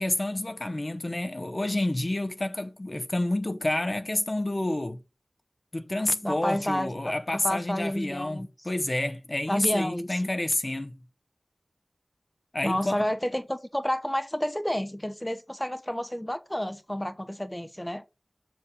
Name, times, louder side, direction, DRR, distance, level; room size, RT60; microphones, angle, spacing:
voice 1, 0.0-5.0 5.7-11.0 12.5-13.0, left 1 dB, 40° left, 0.9 m, -29 dB
voice 2, 6.2-8.5 9.5-10.2 12.6-18.0, equal, 10° left, 0.9 m, -30 dB
7.1 x 6.8 x 5.4 m
wide cardioid pair, 65°, 0 cm